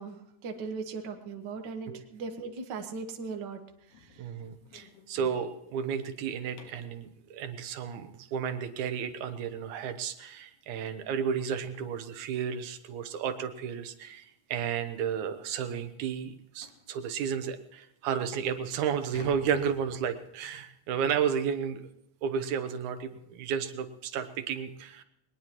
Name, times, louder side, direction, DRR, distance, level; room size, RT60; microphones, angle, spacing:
voice 1, 0.0-3.6 3.9-4.3, right 4 dB, 45° right, 5 dB, 1.6 m, -39 dB
sound 1, 3.9-7.0 9.8-9.9 10.4-10.6 10.9-11.0 11.5-11.6 12.7-12.9 13.2-13.4 14.1-14.2 14.5-14.6 15.1-15.2 16.6-16.9 17.6-17.7 18.2-20.5, left 4 dB, 90° left, 2.9 m, -52 dB
voice 2, 4.2-21.9 22.2-25.0, right 7 dB, 85° right, 10 dB, 2.5 m, -32 dB
21.0 x 19.5 x 3.0 m, 0.80 s
omnidirectional pair, 3.3 m